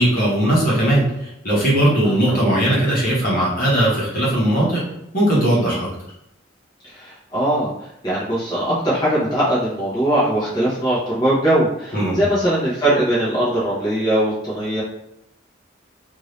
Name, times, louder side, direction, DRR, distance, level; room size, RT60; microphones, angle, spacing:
voice 1, 0.0-4.8 5.1-5.9 11.9-12.2, right 1 dB, 45° left, -6 dB, 1.1 m, -18 dB
voice 2, 6.9-14.8, right 1 dB, 20° left, -9 dB, 1.0 m, -21 dB
2.7 x 2.7 x 3.2 m, 0.80 s
head